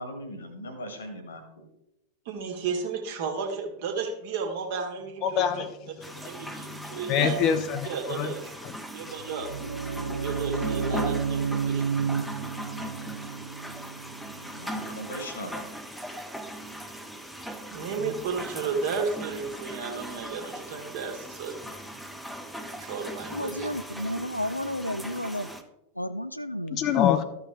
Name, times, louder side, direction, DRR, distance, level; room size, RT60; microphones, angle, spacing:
voice 1, 0.0-1.7 14.4-15.7, equal, 70° left, 6 dB, 1.7 m, -39 dB
voice 2, 2.2-5.5 6.2-7.4 7.8-8.5 8.9-9.5 10.2-12.1 17.7-21.7 22.8-23.7, right 5 dB, 50° right, 3 dB, 1.6 m, -33 dB
voice 3, 5.2-5.7 6.0-6.1 6.4-8.3 8.6-8.7 26.7-27.2, left 8 dB, 40° left, 10 dB, 0.6 m, -26 dB
sound 1, 6.0-25.6, right 1 dB, ahead, 0.8 m, -39 dB
sound 2, 9.1-15.0, right 6 dB, 70° right, 0.5 m, -31 dB
voice 4, 23.3-25.5 26.0-26.8, left 1 dB, 90° left, 12 dB, 0.3 m, -32 dB
13.0 x 5.8 x 3.4 m, 0.89 s
figure-of-eight pair, 90°, 0 cm